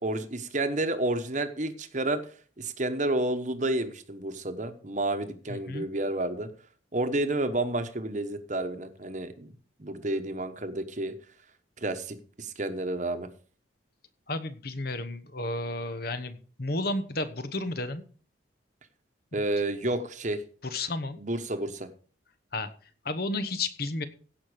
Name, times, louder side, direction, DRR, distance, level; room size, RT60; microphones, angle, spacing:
voice 1, 0.0-2.2 2.6-6.5 6.9-9.5 9.8-11.1 11.8-13.3 19.3-20.4 21.2-21.9, right 2 dB, 40° right, 9 dB, 1.1 m, -30 dB
voice 2, 5.5-5.9 14.3-18.0 19.3-19.4 20.6-21.2 22.5-22.7 23.0-24.0, left 2 dB, 50° left, 11 dB, 1.1 m, -32 dB
16.0 x 5.8 x 5.0 m, 0.42 s
head